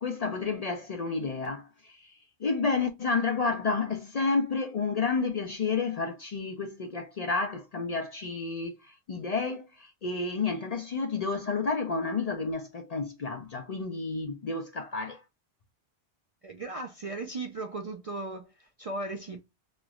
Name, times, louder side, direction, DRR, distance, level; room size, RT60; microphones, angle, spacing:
voice 1, 0.0-15.2, left 4 dB, 50° left, 0.5 m, -30 dB
voice 2, 16.4-19.4, right 2 dB, 50° right, 0.4 m, -37 dB
3.2 x 3.0 x 2.3 m
omnidirectional pair, 1.1 m